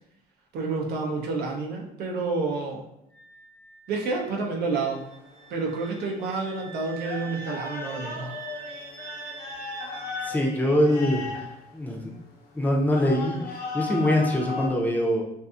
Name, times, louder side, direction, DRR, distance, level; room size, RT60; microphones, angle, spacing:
voice 1, 0.5-2.8 3.9-5.0 5.5-8.4, right 3 dB, 70° right, -1 dB, 0.7 m, -29 dB
Wind instrument woodwind instrument, 3.1-10.4, right 8 dB, 40° right, 1.2 m, -44 dB
sound 1, 5.0-14.7, left 4 dB, 70° left, 0.7 m, -37 dB
voice 2, 10.2-11.5 11.7-12.1 12.5-15.2, equal, 10° left, -1 dB, 0.5 m, -24 dB
2.6 x 2.6 x 2.4 m, 0.81 s
cardioid pair, 110°, 17 cm